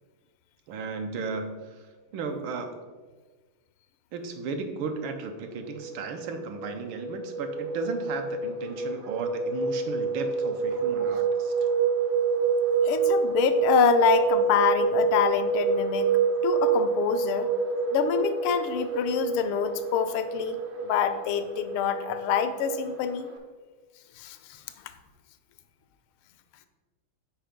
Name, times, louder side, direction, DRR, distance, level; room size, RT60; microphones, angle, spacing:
voice 1, 0.7-1.7 2.1-2.7 4.1-11.5, right 4 dB, 75° right, 6 dB, 1.5 m, -35 dB
sound 1, 5.6-23.4, right 5 dB, 55° right, 0.8 m, -27 dB
voice 2, 12.8-16.1 16.4-17.5 17.9-20.6 20.8-23.3 24.2-24.4, left 9 dB, 85° left, 10 dB, 1.4 m, -26 dB
5.7 x 4.8 x 5.1 m, 1.4 s
omnidirectional pair, 2.3 m